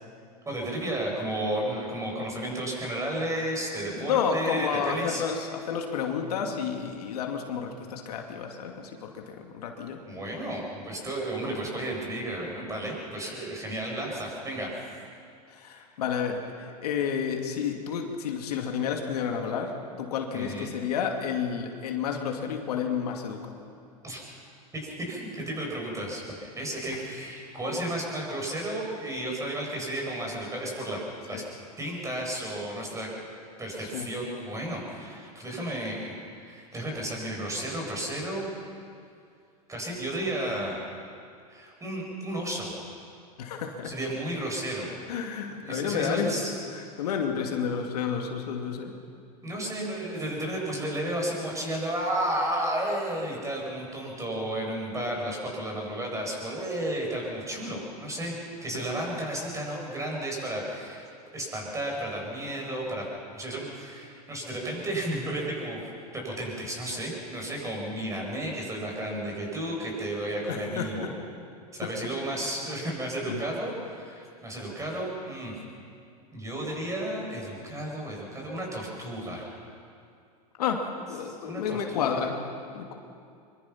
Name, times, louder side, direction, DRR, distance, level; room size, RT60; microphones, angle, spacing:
voice 1, 0.5-5.2 10.1-14.7 15.7-15.8 20.3-20.7 24.0-24.2 24.7-31.0 31.3-31.4 31.8-33.1 33.6-36.1 36.4-38.5 39.7-40.8 41.5-42.7 43.8-44.9 45.6-46.5 49.4-58.4 58.6-61.0 61.3-63.0 63.3-65.8 66.1-71.1 71.7-75.6 76.3-79.5 81.2-82.2, right 1 dB, 15° right, -1 dB, 7.4 m, -33 dB
voice 2, 4.0-10.0 15.5-16.4 16.8-23.5 26.9-27.0 31.3-31.4 33.8-34.1 35.6-35.7 43.4-44.0 45.1-46.4 46.7-48.9 58.7-58.8 70.5-71.1 71.8-71.9 73.3-73.4 80.6-80.8 81.1-82.4 82.7-82.9, left 7 dB, 75° left, 3 dB, 2.5 m, -31 dB
24.5 x 23.5 x 5.9 m, 2.4 s
hypercardioid pair, 105°, 20 cm